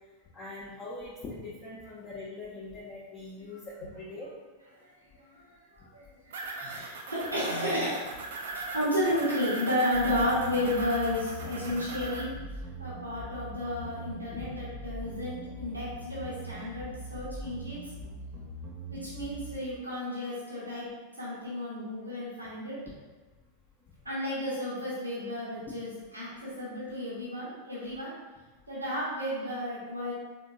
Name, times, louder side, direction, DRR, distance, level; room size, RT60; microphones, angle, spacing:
voice 1, 0.3-4.3, left 2 dB, 30° left, -6 dB, 0.6 m, -42 dB
voice 2, 5.8-8.3 8.7-12.5 12.8-17.9 18.9-20.9 21.2-22.8 24.0-28.1 28.7-30.1, left 1 dB, 80° right, -7 dB, 1.1 m, -32 dB
sound 1, 6.3-12.2, right 3 dB, 60° right, 0.5 m, -39 dB
sound 2, 9.9-19.5, right 1 dB, 30° right, 0.8 m, -42 dB
3.6 x 3.6 x 2.6 m, 1.3 s
figure-of-eight pair, 90°, 0 cm